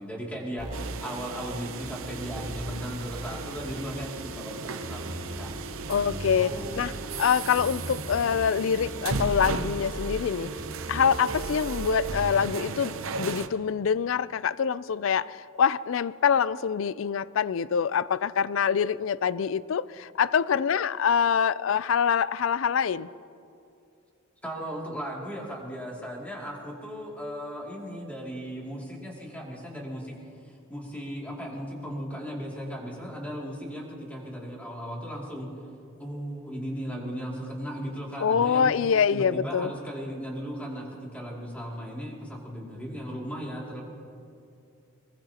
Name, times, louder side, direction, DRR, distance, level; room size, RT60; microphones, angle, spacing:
voice 1, 0.0-5.5 6.0-6.9 24.4-30.1 30.4-35.5 36.0-38.7 39.1-40.9 41.1-43.8, equal, 5° left, -3 dB, 2.5 m, -36 dB
sound 1, 0.6-1.0 1.8-2.8 3.1-4.0 4.8-7.0 7.6-8.6 9.1-10.0 10.6-12.6, equal, 35° right, 2.4 m, -38 dB
sound 2, 0.7-13.5, right 5 dB, 80° right, 0.7 m, -36 dB
voice 2, 5.9-6.9 7.2-10.5 10.9-23.1 38.2-39.7, left 7 dB, 65° left, 18 dB, 0.4 m, -25 dB
22.0 x 21.0 x 2.9 m, 2.6 s
head